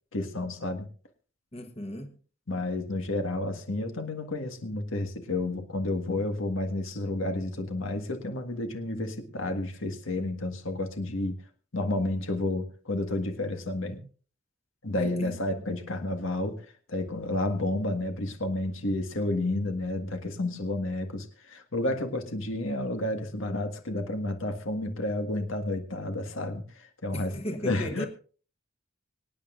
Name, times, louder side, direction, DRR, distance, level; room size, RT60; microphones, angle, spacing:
voice 1, 0.1-0.9 2.5-11.4 11.7-14.0 14.8-16.6 16.9-27.3 27.6-28.1, left 2 dB, 80° left, 1.7 m, -31 dB
voice 2, 1.5-2.1 14.9-15.4 27.1-28.1, equal, 30° left, 1.2 m, -36 dB
25.0 x 9.3 x 2.6 m
head